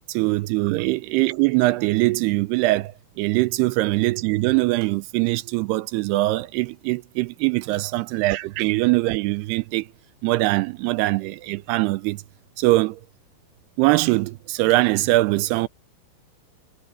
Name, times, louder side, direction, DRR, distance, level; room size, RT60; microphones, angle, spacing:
voice 1, 0.1-9.9 10.2-12.2 12.6-13.0 13.8-15.7, right 19 dB, 85° right, 2.6 m, -22 dB
omnidirectional pair, 4.8 m